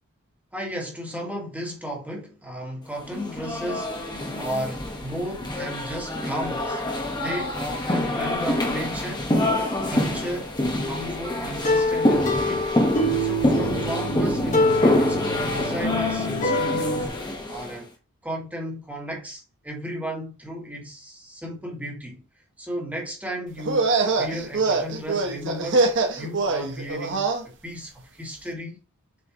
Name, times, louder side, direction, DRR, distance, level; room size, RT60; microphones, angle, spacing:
voice 1, 0.5-4.0 4.3-6.8 7.2-9.3 9.9-10.6 10.8-17.1 17.5-17.9 18.2-22.2 22.6-28.8, equal, 5° right, 2.1 m, -34 dB
sound 1, 3.1-17.8, left 1 dB, 20° left, 1.6 m, -26 dB
sound 2, 10.2-10.6 11.6-17.1, left 1 dB, 35° left, 1.7 m, -25 dB
sound 3, 23.6-27.4, right 3 dB, 55° right, 1.3 m, -24 dB
7.6 x 4.8 x 3.2 m
head